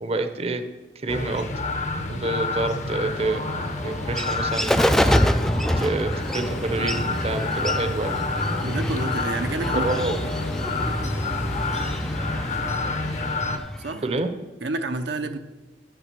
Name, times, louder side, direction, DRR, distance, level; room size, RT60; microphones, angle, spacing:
voice 1, 0.0-0.6 0.9-1.5 2.1-3.4 3.8-5.2 5.8-8.2 9.7-10.1 14.0-14.3, right 2 dB, 35° right, 8 dB, 0.7 m, -27 dB
sound 1, 1.1-13.6, left 3 dB, 40° left, 0.8 m, -29 dB
Bird, 2.6-14.1, equal, 5° left, 0.3 m, -27 dB
sound 2, 6.1-12.1, left 1 dB, 90° left, 1.3 m, -40 dB
voice 2, 8.6-10.3 13.8-14.2 14.6-15.4, right 2 dB, 75° right, 6 dB, 0.7 m, -29 dB
10.0 x 6.1 x 6.7 m, 1.2 s
head